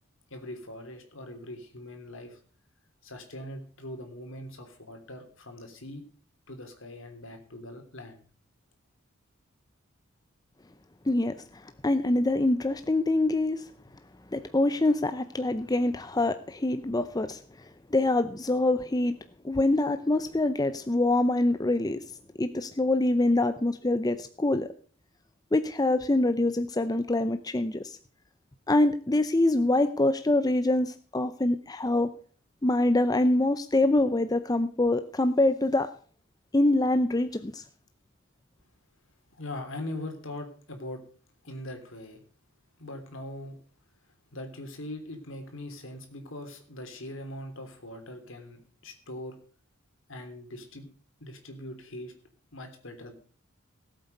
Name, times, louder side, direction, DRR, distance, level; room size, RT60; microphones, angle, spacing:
voice 1, 0.3-2.4 3.0-6.0 6.5-8.2 39.4-41.0 41.4-42.2 42.8-43.5 44.3-49.3 50.1-50.9 51.2-52.1 52.5-53.1, left 1 dB, 65° left, 5 dB, 3.2 m, -41 dB
voice 2, 11.8-13.6 14.3-17.4 17.9-19.1 19.4-22.0 22.4-24.7 25.5-28.0 28.7-32.1 32.6-35.9 36.5-37.6, left 2 dB, 20° left, 10 dB, 0.6 m, -25 dB
17.5 x 8.1 x 5.3 m, 0.44 s
head